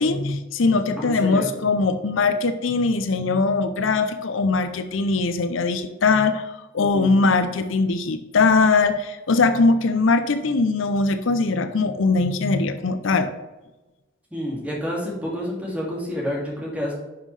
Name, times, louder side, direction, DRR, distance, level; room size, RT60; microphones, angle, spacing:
voice 1, 0.0-13.3, left 3 dB, 75° left, 10 dB, 0.5 m, -21 dB
voice 2, 1.0-1.5 6.8-7.1 14.3-16.9, equal, 5° right, -4 dB, 2.1 m, -29 dB
10.5 x 5.5 x 3.2 m, 1.1 s
head